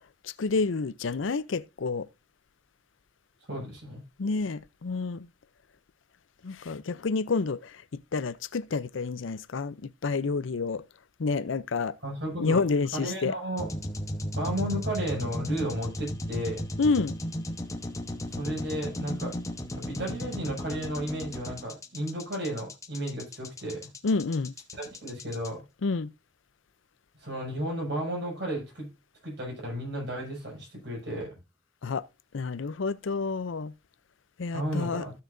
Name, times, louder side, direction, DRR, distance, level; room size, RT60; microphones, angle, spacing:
voice 1, 0.2-2.1 4.2-5.3 6.4-7.7 8.1-10.8 11.2-11.9 12.4-13.3 16.8-17.1 24.0-24.5 25.8-26.1 31.8-32.0 32.3-33.7 34.4-35.0, left 4 dB, 90° left, 0.6 m, -29 dB
voice 2, 3.5-4.0 12.0-12.6 12.9-13.7 14.4-16.6 18.4-19.3 19.8-23.9 25.0-25.6 27.2-28.9 29.2-31.4 34.5-35.1, equal, 60° right, 6.4 m, -33 dB
sound 1, 13.6-25.5, left 1 dB, 15° left, 1.0 m, -35 dB
15.5 x 6.4 x 2.6 m
head